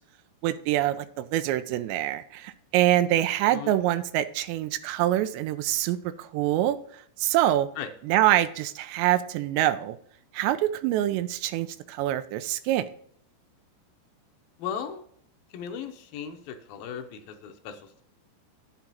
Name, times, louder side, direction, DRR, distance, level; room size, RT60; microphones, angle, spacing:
voice 1, 0.4-7.7 8.0-10.0 10.3-12.9, right 13 dB, 90° right, 11 dB, 2.9 m, -25 dB
voice 2, 14.6-15.0 15.5-18.0, left 8 dB, 75° left, 6 dB, 2.4 m, -37 dB
8.9 x 6.0 x 4.0 m, 0.63 s
omnidirectional pair, 4.9 m